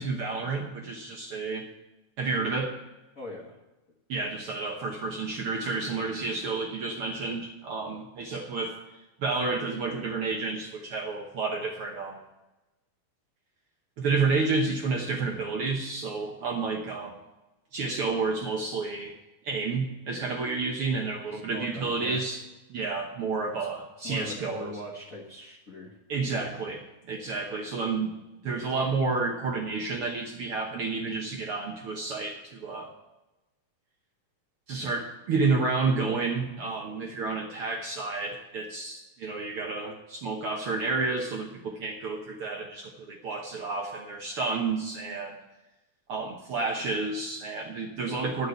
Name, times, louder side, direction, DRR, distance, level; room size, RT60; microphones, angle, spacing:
voice 1, 0.0-1.7 2.2-2.7 4.1-8.8 9.2-12.2 14.0-17.2 17.7-19.1 19.4-22.4 22.7-24.7 26.1-28.1 28.4-32.9 34.7-45.4 46.1-48.5, right 4 dB, 60° right, 1 dB, 1.6 m, -30 dB
voice 2, 3.1-3.5 21.3-22.2 23.5-23.7 24.0-26.0, left 1 dB, 40° left, -3 dB, 1.3 m, -41 dB
11.0 x 6.6 x 8.0 m, 1.0 s
omnidirectional pair, 3.5 m